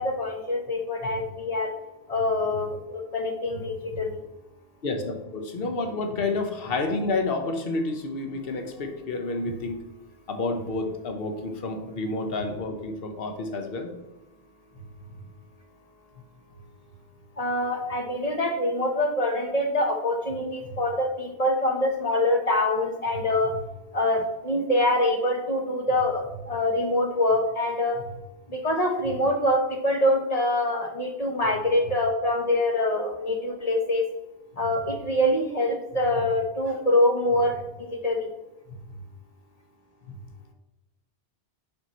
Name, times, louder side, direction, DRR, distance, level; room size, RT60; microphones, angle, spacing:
voice 1, 0.0-1.7 2.1-4.2 17.4-23.6 23.9-28.0 28.5-34.0 34.6-38.3, left 1 dB, 40° left, 2 dB, 0.9 m, -25 dB
voice 2, 4.8-9.8 10.3-13.9 17.8-17.9, left 3 dB, 65° left, 5 dB, 1.1 m, -29 dB
5.5 x 5.5 x 4.4 m, 0.96 s
omnidirectional pair, 1.1 m